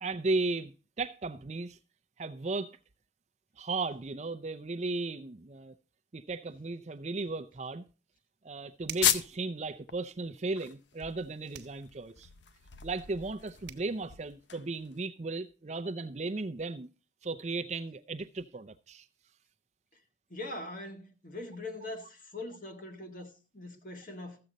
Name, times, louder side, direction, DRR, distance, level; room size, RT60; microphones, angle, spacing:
voice 1, 0.0-1.8 2.2-2.8 3.6-5.7 6.1-7.8 8.4-12.3 12.8-16.9 17.2-19.1, right 3 dB, 35° right, 0.5 m, -35 dB
sound 1, 8.9-9.3 11.5-11.8 13.3-13.4 13.7-13.9, right 9 dB, 65° right, 1.2 m, -44 dB
sound 2, 9.0-9.5 9.9-10.0 10.4-15.0, left 9 dB, 80° left, 0.7 m, -35 dB
voice 2, 20.3-24.4, left 2 dB, 45° left, 1.7 m, -42 dB
14.0 x 7.8 x 4.0 m
head